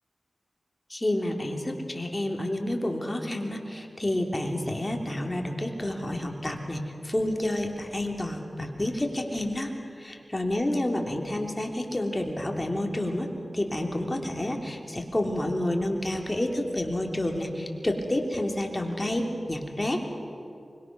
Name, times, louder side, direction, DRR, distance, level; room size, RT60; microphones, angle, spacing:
voice 1, 0.9-9.7 10.0-13.3 13.5-20.1, left 1 dB, 25° left, 2 dB, 3.2 m, -29 dB
24.5 x 22.0 x 6.3 m, 2.6 s
cardioid pair, 45°, 0 cm